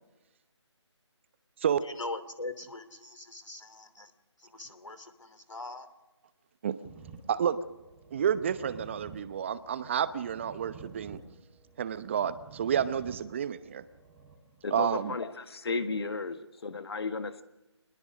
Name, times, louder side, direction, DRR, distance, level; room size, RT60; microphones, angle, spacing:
voice 1, 1.8-4.1 4.4-5.9, left 2 dB, 85° left, 12 dB, 2.9 m, -41 dB
sound 1, 6.8-14.8, right 5 dB, 5° right, 2.4 m, -51 dB
voice 2, 7.3-7.6 8.1-11.2 11.8-13.8 14.7-15.1, right 8 dB, 25° right, 14 dB, 0.9 m, -30 dB
voice 3, 14.6-17.4, left 4 dB, 55° left, 10 dB, 1.7 m, -34 dB
25.5 x 21.0 x 6.4 m, 1.0 s
figure-of-eight pair, 160°, 15 cm